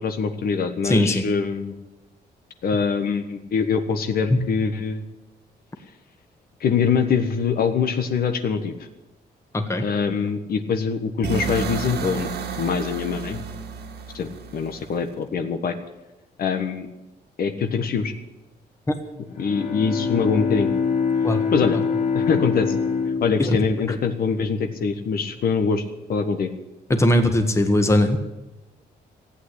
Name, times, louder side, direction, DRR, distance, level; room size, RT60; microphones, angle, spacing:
voice 1, 0.0-1.7 2.6-5.0 6.6-8.8 9.8-12.3 12.6-13.4 14.1-15.7 16.4-16.9 17.4-18.1 19.4-20.7 21.5-21.8 22.1-22.7 23.2-25.8 26.1-26.5, left 5 dB, 60° left, 7 dB, 1.4 m, -23 dB
voice 2, 0.8-1.2 4.3-4.4 9.5-9.8 18.9-19.0 21.2-21.5 21.7-21.8 23.4-23.6 26.9-28.2, left 1 dB, 15° left, 6 dB, 1.6 m, -19 dB
sound 1, 11.2-15.1, right 6 dB, 80° right, 2.0 m, -31 dB
Bowed string instrument, 19.2-24.8, left 5 dB, 40° left, 3.0 m, -25 dB
15.5 x 8.7 x 10.0 m, 1.0 s
cardioid pair, 125°, 17 cm